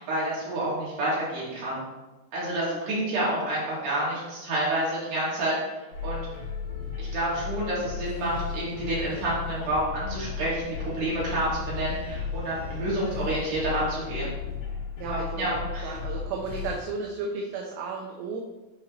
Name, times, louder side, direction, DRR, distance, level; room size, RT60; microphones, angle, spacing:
voice 1, 0.0-1.8 2.3-6.3 7.0-14.3 15.0-15.9, right 1 dB, 60° right, -8 dB, 4.2 m, -29 dB
sound 1, 5.9-16.8, left 6 dB, 55° left, 3.2 m, -35 dB
voice 2, 15.0-18.4, right 4 dB, 80° right, 0 dB, 2.8 m, -34 dB
10.5 x 4.6 x 2.9 m, 1.1 s
omnidirectional pair, 4.9 m